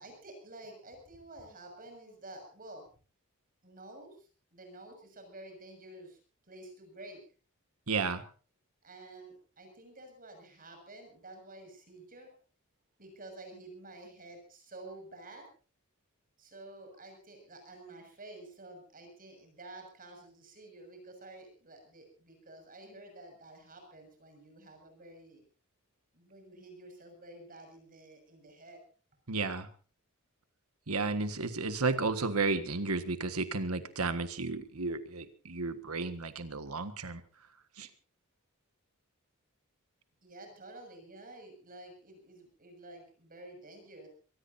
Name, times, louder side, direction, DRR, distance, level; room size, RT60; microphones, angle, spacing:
voice 1, 0.0-2.9 3.6-6.2 6.5-7.2 8.8-12.3 13.0-15.4 16.4-25.4 26.1-28.8 40.2-44.1, right 2 dB, 40° right, 4 dB, 6.7 m, -50 dB
voice 2, 7.9-8.2 29.3-29.7 30.9-37.2 37.8-37.9, right 3 dB, 80° right, 10 dB, 1.6 m, -33 dB
24.5 x 19.5 x 2.8 m, 0.38 s
head